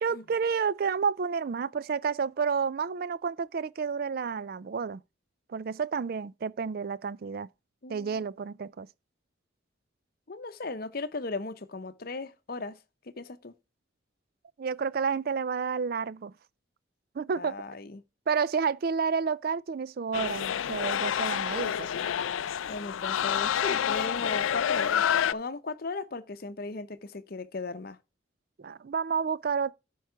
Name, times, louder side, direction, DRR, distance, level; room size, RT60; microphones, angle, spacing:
voice 1, 0.0-5.0 5.5-7.5 7.9-8.9 14.6-16.3 17.1-17.6 18.3-21.9 28.6-29.7, right 6 dB, 50° right, 0.4 m, -30 dB
voice 2, 7.8-8.2 10.3-12.8 13.2-13.5 17.4-18.0 22.7-25.0 25.3-28.0, left 3 dB, 50° left, 0.8 m, -37 dB
sound 1, 20.1-25.3, left 9 dB, 90° left, 0.4 m, -28 dB
12.5 x 4.7 x 4.5 m
head